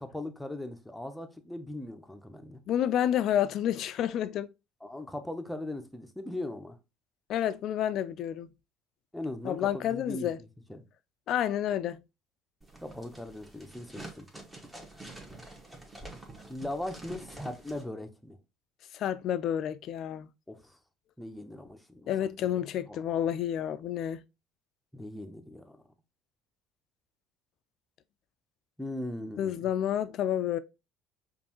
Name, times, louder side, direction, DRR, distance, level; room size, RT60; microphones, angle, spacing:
voice 1, 0.0-2.6 4.8-6.8 9.1-10.8 12.8-14.3 16.5-18.4 20.5-20.7 21.2-22.5 22.9-23.0 24.9-25.8 28.8-29.7, left 1 dB, 5° left, 0.8 m, -39 dB
voice 2, 2.7-4.5 7.3-8.5 9.4-10.4 11.3-12.0 18.9-20.3 22.1-24.2 29.4-30.6, left 10 dB, 60° left, 0.4 m, -29 dB
sound 1, 12.6-17.8, right 2 dB, 15° right, 1.4 m, -47 dB
5.1 x 2.6 x 2.9 m
hypercardioid pair, 70°, 0 cm